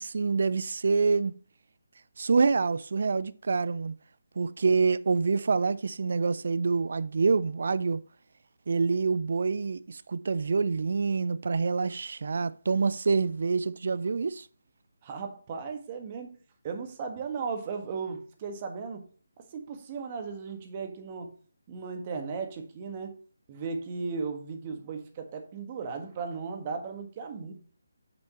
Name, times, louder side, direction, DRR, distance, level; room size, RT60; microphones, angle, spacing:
voice 1, 0.0-1.4 2.2-3.9 4.4-8.0 8.7-14.5, right 4 dB, 55° right, 0.5 m, -26 dB
voice 2, 15.0-16.3 16.6-19.0 19.4-21.3 21.7-23.2 23.5-27.5, right 5 dB, 30° right, 1.6 m, -36 dB
7.9 x 6.8 x 3.0 m
figure-of-eight pair, 150°, 0 cm